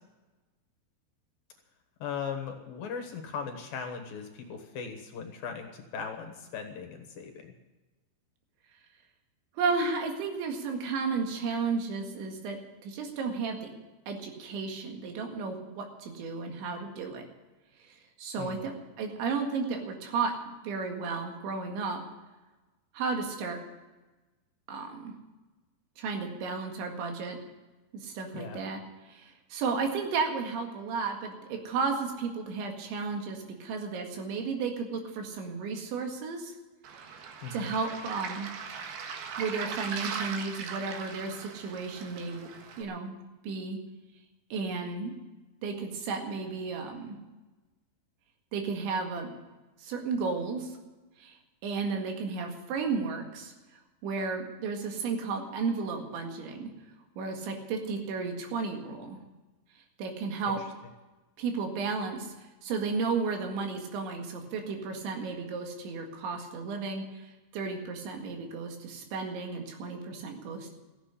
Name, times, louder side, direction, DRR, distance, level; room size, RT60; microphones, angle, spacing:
voice 1, 2.0-7.5 18.4-18.7 28.3-28.6 37.4-37.7 60.5-60.6, left 6 dB, 65° left, 5 dB, 2.8 m, -38 dB
voice 2, 9.6-13.7 14.1-17.2 18.2-20.3 20.6-22.0 22.9-23.6 24.7-25.1 26.0-27.4 27.9-28.8 29.1-36.5 37.0-37.1 37.5-38.5 39.4-42.5 42.8-43.2 43.4-43.8 44.5-45.1 45.6-47.2 48.5-49.3 49.8-50.7 51.2-51.3 51.6-53.5 54.0-56.7 57.2-59.2 60.0-60.6 61.4-62.3 62.6-70.7, right 4 dB, 85° right, 3 dB, 4.3 m, -33 dB
Waves surf, 36.8-42.8, right 6 dB, 65° right, 3.1 m, -39 dB
14.5 x 8.8 x 9.8 m, 1.2 s
omnidirectional pair, 5.2 m